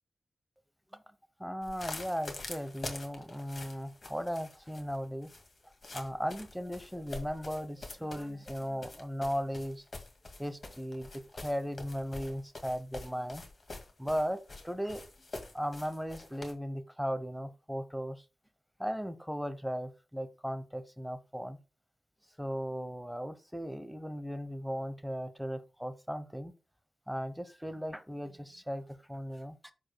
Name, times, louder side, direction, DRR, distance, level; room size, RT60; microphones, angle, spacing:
voice 1, 1.4-5.3 5.9-9.8 10.4-11.1 11.4-13.4 14.0-15.0 15.5-18.2 18.8-21.6 22.4-26.5 27.1-29.7, equal, ahead, 10 dB, 0.9 m, -37 dB
sound 1, 1.6-16.5, left 2 dB, 50° left, 2.0 m, -46 dB
13.5 x 4.9 x 2.2 m, 0.31 s
cardioid pair, 70°, 0 cm